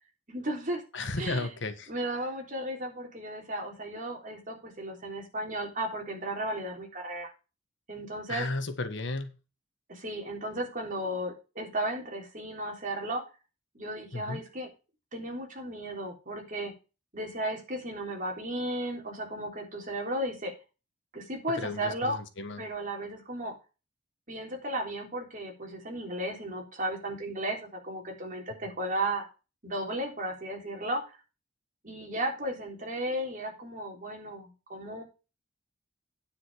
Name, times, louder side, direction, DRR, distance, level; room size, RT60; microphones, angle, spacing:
voice 1, 0.3-0.8 1.2-1.5 1.9-7.3 7.9-8.5 9.9-13.2 13.7-14.7 15.1-16.7 17.1-20.5 21.1-22.2 22.6-23.5 24.3-29.3 29.6-31.2 31.8-35.0, right 1 dB, 40° right, 1 dB, 3.6 m, -34 dB
voice 2, 0.9-1.9 8.3-9.4 14.1-14.4 21.6-22.6, left 2 dB, 65° left, 9 dB, 1.6 m, -34 dB
9.6 x 7.7 x 4.7 m, 0.31 s
head